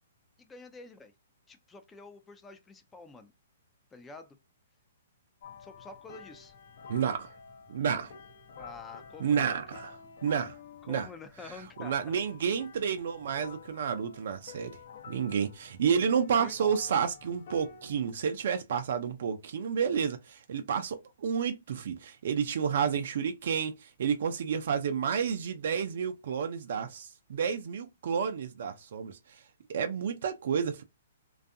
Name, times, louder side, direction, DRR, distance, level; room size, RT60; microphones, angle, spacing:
voice 1, 0.4-1.1 1.5-3.3 3.9-4.4 5.6-6.5 8.6-9.8 10.8-12.2 16.4-16.5, left 3 dB, 15° left, 0.4 m, -48 dB
sound 1, 5.4-18.1, left 5 dB, 60° left, 0.6 m, -49 dB
voice 2, 6.9-7.4 7.7-8.1 9.2-10.6 10.9-11.1 11.8-14.7 15.1-29.4 29.7-30.8, right 7 dB, 65° right, 0.4 m, -30 dB
2.5 x 2.3 x 2.5 m
hypercardioid pair, 135°, 0 cm